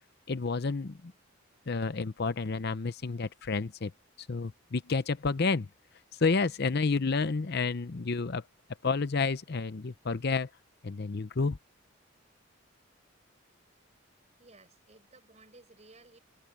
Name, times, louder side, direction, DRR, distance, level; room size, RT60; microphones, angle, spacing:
voice 1, 0.3-1.1 1.7-3.9 4.2-5.7 6.2-8.4 8.8-10.5 10.8-11.6, left 4 dB, 50° left, 0.7 m, -30 dB
voice 2, 14.4-16.2, right 2 dB, 35° right, 5.8 m, -57 dB
head